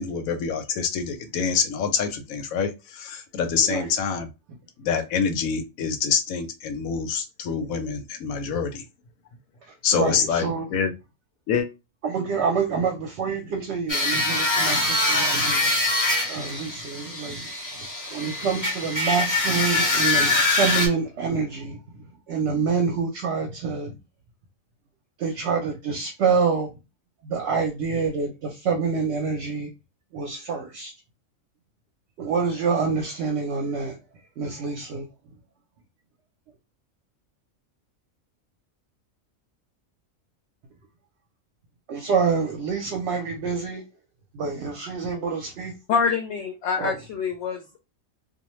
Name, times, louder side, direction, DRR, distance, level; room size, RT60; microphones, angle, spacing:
voice 1, 0.0-4.3 4.8-8.8 9.8-10.9 11.5-11.7, left 6 dB, 90° left, 1.0 m, -26 dB
voice 2, 3.6-3.9 9.9-10.8 12.0-15.7 16.3-17.5 18.1-21.8 22.3-23.9 25.2-26.7 27.2-29.7 30.1-30.9 32.2-34.0 34.4-35.1 41.9-43.8 44.3-45.7 46.8-47.0, right 5 dB, 65° right, 0.8 m, -27 dB
sound 1, 13.9-20.9, left 2 dB, 20° left, 0.5 m, -24 dB
voice 3, 45.9-47.8, left 6 dB, 65° left, 0.7 m, -26 dB
2.5 x 2.1 x 3.0 m
omnidirectional pair, 1.4 m